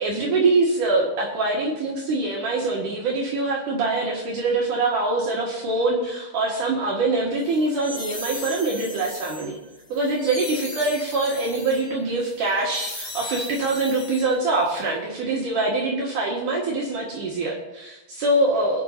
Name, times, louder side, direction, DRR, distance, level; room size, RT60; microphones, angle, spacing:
voice 1, 0.0-9.5 9.9-18.8, right 2 dB, 65° right, -3 dB, 3.0 m, -24 dB
sound 1, 7.4-14.7, left 2 dB, 20° left, 3.2 m, -37 dB
23.5 x 8.6 x 2.8 m, 0.98 s
omnidirectional pair, 4.2 m